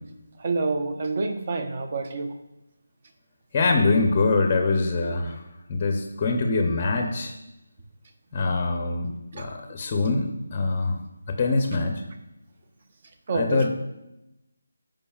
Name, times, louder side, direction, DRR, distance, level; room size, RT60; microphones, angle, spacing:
voice 1, 0.4-2.3 9.3-9.4 13.3-13.7, right 3 dB, 35° right, 7 dB, 0.8 m, -27 dB
voice 2, 3.5-5.3 5.7-7.3 8.3-11.0 11.4-12.0 13.3-13.7, left 3 dB, 25° left, 4 dB, 0.6 m, -24 dB
12.5 x 5.2 x 2.4 m, 0.92 s
figure-of-eight pair, 170°, 0 cm